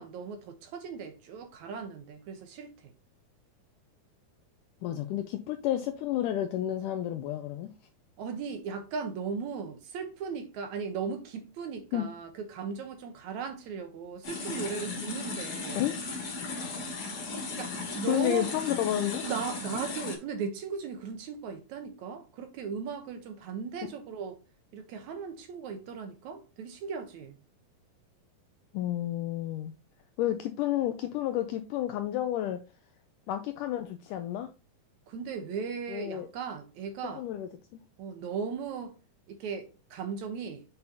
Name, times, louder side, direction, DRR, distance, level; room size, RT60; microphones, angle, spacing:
voice 1, 0.0-2.9 8.2-15.9 17.5-18.5 19.2-24.4 24.7-27.4 35.1-37.2 38.0-39.0 39.3-40.6, right 6 dB, 70° right, 1.9 m, -37 dB
voice 2, 4.8-7.7 11.9-12.1 15.8-16.0 18.1-19.2 28.7-29.7 30.2-32.6 33.3-34.5 35.9-36.3 37.2-37.8, left 12 dB, 85° left, 1.8 m, -31 dB
sound 1, 14.2-20.2, left 3 dB, 50° left, 3.1 m, -36 dB
7.9 x 5.5 x 2.8 m
omnidirectional pair, 4.3 m